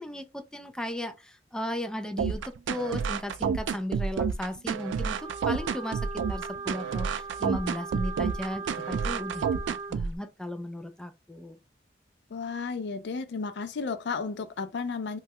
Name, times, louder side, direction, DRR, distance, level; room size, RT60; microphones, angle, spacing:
voice 1, 0.0-9.5 9.9-11.6, left 1 dB, 5° left, 0.3 m, -36 dB
sound 1, 2.2-10.2, right 6 dB, 85° right, 0.3 m, -29 dB
Wind instrument woodwind instrument, 5.1-10.0, right 4 dB, 20° right, 0.8 m, -39 dB
voice 2, 12.3-15.2, left 4 dB, 70° left, 0.4 m, -33 dB
3.1 x 2.3 x 2.8 m
head